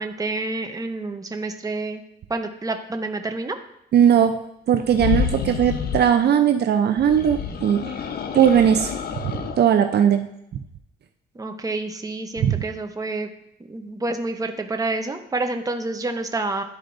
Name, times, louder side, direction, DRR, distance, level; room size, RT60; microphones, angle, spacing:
voice 1, 0.0-2.0 2.3-3.6 11.3-13.3 13.7-16.6, right 2 dB, 15° right, 5 dB, 0.8 m, -28 dB
voice 2, 3.9-4.4 4.7-7.8 8.3-8.9 9.6-10.3 12.4-12.6, right 9 dB, 55° right, 6 dB, 0.5 m, -18 dB
sound 1, 4.8-6.1 7.0-9.6, left 7 dB, 50° left, 0.7 m, -28 dB
12.0 x 4.4 x 2.6 m, 0.78 s
cardioid pair, 90°, 20 cm